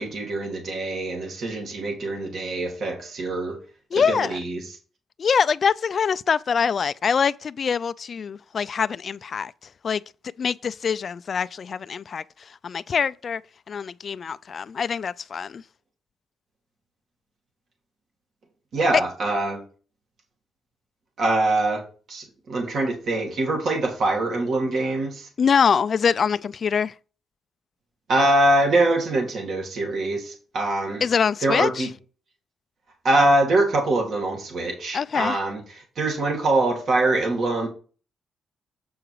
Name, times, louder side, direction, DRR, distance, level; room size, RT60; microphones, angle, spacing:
voice 1, 0.0-3.6 3.9-4.7 18.7-19.6 21.2-21.8 22.1-25.3 28.1-31.0 31.4-31.9 33.0-37.7, right 2 dB, 55° right, 2.1 m, -23 dB
voice 2, 3.9-4.4 5.2-9.5 9.8-10.0 10.4-12.2 12.6-13.4 13.7-15.6 25.4-26.9 31.0-31.9 34.9-35.4, left 6 dB, 45° left, 0.3 m, -24 dB
7.9 x 4.9 x 4.6 m
cardioid pair, 120°, 0 cm